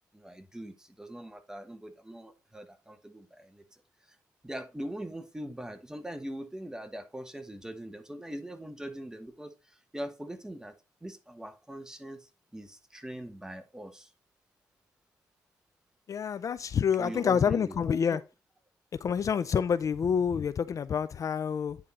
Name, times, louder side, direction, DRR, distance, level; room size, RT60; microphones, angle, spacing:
voice 1, 0.1-3.6 4.1-4.2 4.4-10.7 11.0-14.1 17.0-18.2, right 1 dB, 10° right, 1.2 m, -42 dB
voice 2, 16.1-18.2 19.0-21.8, left 7 dB, 50° left, 0.4 m, -27 dB
9.3 x 3.8 x 4.2 m
cardioid pair, 85°, 7 cm